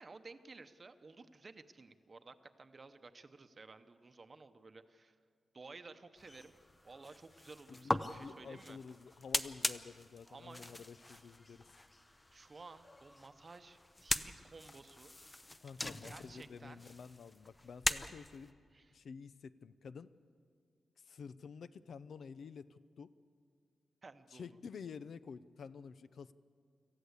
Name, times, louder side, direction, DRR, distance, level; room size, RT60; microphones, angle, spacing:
voice 1, 0.0-5.1 5.5-6.5 6.8-8.8 10.3-10.8 11.1-11.2 12.3-15.1 16.0-16.8 18.7-18.9 24.0-24.5, right 3 dB, 30° right, 9 dB, 0.9 m, -54 dB
sound 1, 6.2-18.5, left 2 dB, 15° left, 0.6 m, -42 dB
voice 2, 7.7-11.7 15.6-18.5 18.9-20.1 21.0-23.1 24.3-26.3, left 6 dB, 65° left, 14 dB, 0.6 m, -50 dB
26.0 x 15.0 x 8.2 m, 2.1 s
wide cardioid pair, 170°, 0 cm